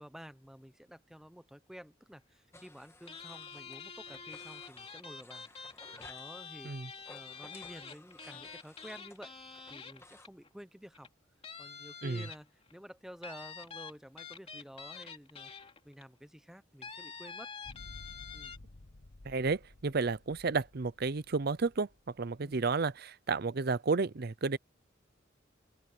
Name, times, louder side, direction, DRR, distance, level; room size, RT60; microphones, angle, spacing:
voice 1, 0.0-6.7 7.1-9.3 9.7-11.1 11.6-15.5 15.8-17.5 18.3-18.6 22.4-22.6, equal, ahead, 0.8 m, -51 dB
sound 1, 2.5-3.8 4.1-6.3 7.0-10.3, left 2 dB, 15° left, 1.6 m, -57 dB
sound 2, 3.1-10.5 10.9-11.1 11.4-12.7 13.2-16.0 16.8-18.6, left 5 dB, 30° left, 3.0 m, -47 dB
sound 3, 17.6-22.9, left 2 dB, 60° left, 1.1 m, -54 dB
voice 2, 19.2-21.9 22.2-24.6, right 4 dB, 50° right, 0.6 m, -32 dB
open air
head